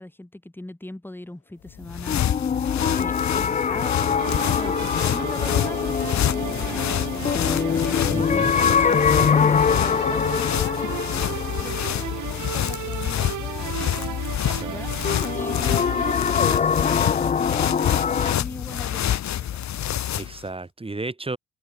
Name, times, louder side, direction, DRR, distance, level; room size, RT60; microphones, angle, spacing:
voice 1, 0.0-8.1 8.6-14.9 15.3-17.9 18.3-19.6, left 1 dB, 5° left, 3.2 m, -40 dB
sound 1, 1.7-20.4, left 11 dB, 65° left, 2.2 m, -27 dB
sound 2, 2.1-12.9 15.0-18.3, left 6 dB, 25° left, 0.5 m, -24 dB
sound 3, 4.2-16.1, right 13 dB, 75° right, 2.7 m, -35 dB
voice 2, 8.1-8.5 14.4-15.1 20.2-21.4, right 3 dB, 20° right, 5.4 m, -33 dB
cardioid pair, 90°, 30 cm